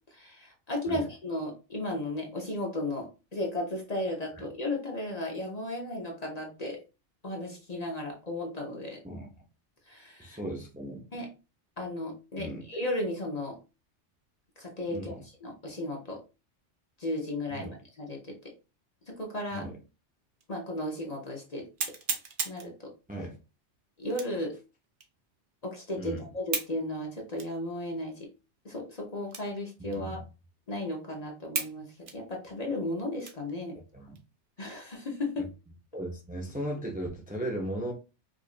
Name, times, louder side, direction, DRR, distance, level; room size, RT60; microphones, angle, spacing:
voice 1, 0.1-6.8 7.2-9.0 9.9-10.4 11.1-11.3 11.8-13.6 14.6-16.2 17.0-17.7 18.0-18.3 19.1-19.7 20.5-21.7 22.4-22.9 24.0-24.6 25.6-28.3 28.6-30.2 30.7-31.9 32.1-33.8 34.6-35.5, left 1 dB, 35° left, 0 dB, 0.8 m, -35 dB
voice 2, 10.2-11.1 12.4-12.6 14.9-15.2 17.5-17.8 19.5-19.8 23.1-23.4 26.0-26.2 30.0-30.2 33.9-34.2 35.9-37.9, right 1 dB, 10° right, 0 dB, 0.6 m, -36 dB
sound 1, 20.4-20.5 21.0-21.1 21.8-22.7 24.1-24.5 25.0-25.1 26.5-26.8 27.4-27.5 28.2-28.3 29.3-29.6 29.9-30.0 30.7-30.8 31.5-31.8 32.1-33.5 34.0-34.2 34.7-35.1, right 5 dB, 50° right, 0.8 m, -35 dB
4.9 x 2.5 x 2.4 m, 0.31 s
omnidirectional pair, 1.3 m